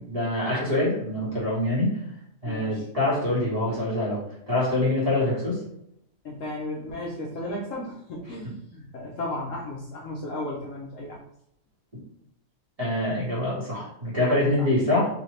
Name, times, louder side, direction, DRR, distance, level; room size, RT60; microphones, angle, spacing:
voice 1, 0.0-1.9 2.4-4.2 4.5-5.6 12.8-15.1, left 1 dB, 25° right, -8 dB, 1.5 m, -25 dB
voice 2, 2.4-2.9 6.2-11.2 14.6-14.7, left 1 dB, 60° left, -3 dB, 1.0 m, -34 dB
4.0 x 2.8 x 3.2 m, 0.73 s
omnidirectional pair, 1.7 m